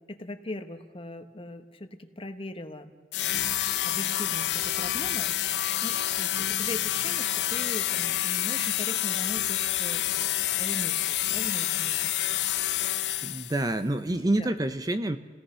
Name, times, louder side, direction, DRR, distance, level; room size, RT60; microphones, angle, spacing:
voice 1, 0.1-2.9 3.2-3.6 3.9-5.3 5.8-12.1 14.4-14.5, left 1 dB, 30° left, 7 dB, 1.3 m, -40 dB
sound 1, 3.1-13.7, left 13 dB, 70° left, 0.6 m, -28 dB
voice 2, 13.2-15.2, right 1 dB, 20° right, 9 dB, 0.8 m, -27 dB
29.5 x 17.5 x 5.7 m, 1.3 s
head